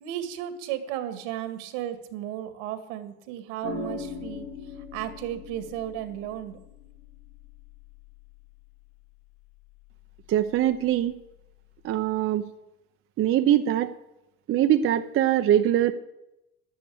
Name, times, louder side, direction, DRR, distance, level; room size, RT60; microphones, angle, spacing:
voice 1, 0.0-4.5 4.9-6.6, right 11 dB, 80° right, 10 dB, 2.0 m, -34 dB
sound 1, 3.6-12.2, left 4 dB, 80° left, 2.3 m, -43 dB
voice 2, 10.3-11.1 11.8-12.4 13.2-13.9 14.5-15.9, right 11 dB, 40° right, 8 dB, 0.7 m, -22 dB
11.0 x 10.5 x 8.6 m, 0.91 s
supercardioid pair, 120°, 32 cm